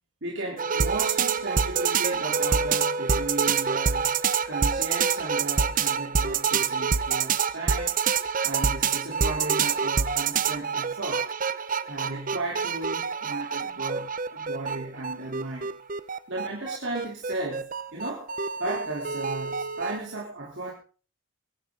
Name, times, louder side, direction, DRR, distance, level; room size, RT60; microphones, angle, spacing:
voice 1, 0.2-4.1 4.5-8.0 8.4-11.3 11.9-15.7 16.3-18.3 18.6-20.7, right 2 dB, 60° right, -3 dB, 3.5 m, -35 dB
sound 1, 0.6-20.0, right 6 dB, 40° right, 0.7 m, -26 dB
22.5 x 11.0 x 3.8 m, 0.38 s
head